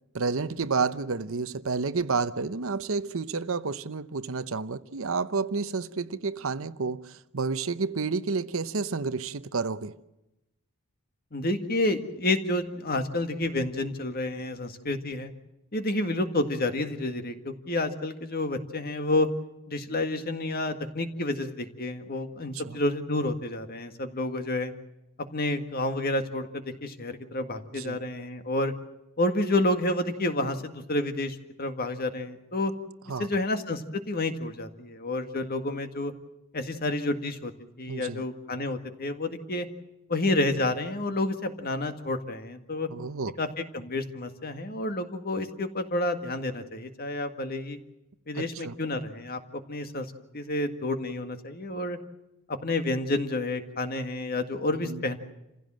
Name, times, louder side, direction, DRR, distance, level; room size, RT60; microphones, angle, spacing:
voice 1, 0.1-9.9 22.6-22.8 27.7-28.0 33.1-33.3 37.9-38.2 42.9-43.4 48.3-48.8 54.8-55.0, right 4 dB, 65° right, 0.8 m, -30 dB
voice 2, 11.3-15.3 15.7-19.3 19.7-24.7 25.3-28.7 29.2-32.7 33.2-36.1 36.5-37.5 37.8-39.7 40.1-42.9 43.4-43.5 43.7-47.8 48.3-50.1 50.3-52.0 52.5-55.2, left 2 dB, 45° left, 1.9 m, -29 dB
28.0 x 16.0 x 7.6 m
head